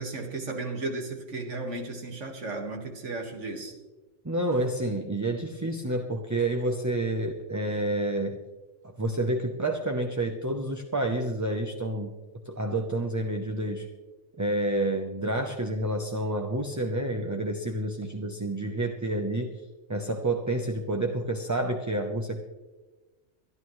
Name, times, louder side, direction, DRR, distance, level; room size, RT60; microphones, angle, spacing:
voice 1, 0.0-3.7, right 2 dB, 75° right, 3 dB, 2.1 m, -34 dB
voice 2, 4.2-8.4 9.0-12.1 12.5-13.9 14.4-19.5 19.9-22.4, right 1 dB, 20° right, 4 dB, 0.7 m, -29 dB
24.0 x 11.0 x 3.2 m, 1.2 s
omnidirectional pair, 1.2 m